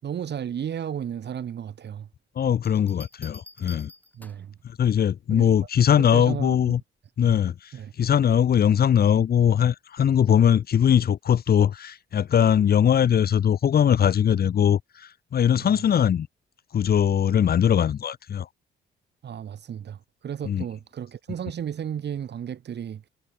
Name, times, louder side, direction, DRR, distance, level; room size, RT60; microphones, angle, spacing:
voice 1, 0.0-2.1 4.1-4.5 5.3-5.5 5.9-6.7 7.2-7.4 7.7-7.9 15.6-15.8 19.2-23.0, right 9 dB, 60° right, 5.2 m, -34 dB
voice 2, 2.4-3.9 4.6-6.8 7.2-16.3 16.7-18.5 20.5-20.6, left 9 dB, 50° left, 1.1 m, -21 dB
sound 1, 2.6-4.6 6.2-6.5, left 1 dB, 10° left, 3.2 m, -48 dB
cardioid pair, 90°, 20 cm